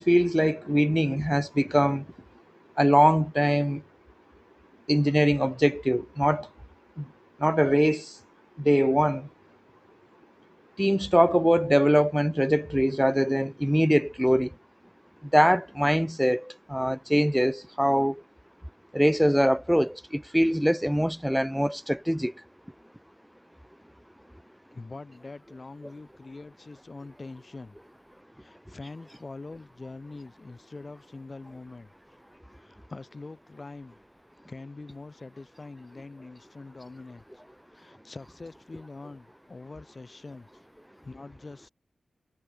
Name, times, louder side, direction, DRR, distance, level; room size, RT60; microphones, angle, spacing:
voice 1, 0.0-2.0 2.8-3.8 4.9-6.5 7.0-7.1 7.4-8.1 8.6-9.3 10.8-14.5 15.3-18.2 18.9-22.3, equal, ahead, 0.4 m, -23 dB
voice 2, 24.7-27.8 28.4-31.9 32.6-33.9 34.5-37.2 37.7-40.5 41.0-41.7, left 3 dB, 40° left, 2.7 m, -44 dB
cardioid pair, 55°, 0 cm